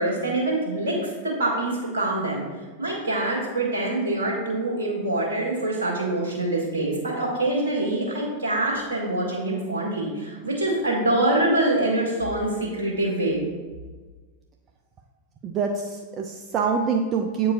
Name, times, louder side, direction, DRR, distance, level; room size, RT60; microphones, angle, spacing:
voice 1, 0.0-2.4 2.8-13.4, right 2 dB, 70° right, -3 dB, 1.6 m, -25 dB
voice 2, 15.4-17.5, right 6 dB, 30° right, 3 dB, 0.4 m, -25 dB
8.0 x 4.7 x 2.5 m, 1.4 s
figure-of-eight pair, 90°, 0 cm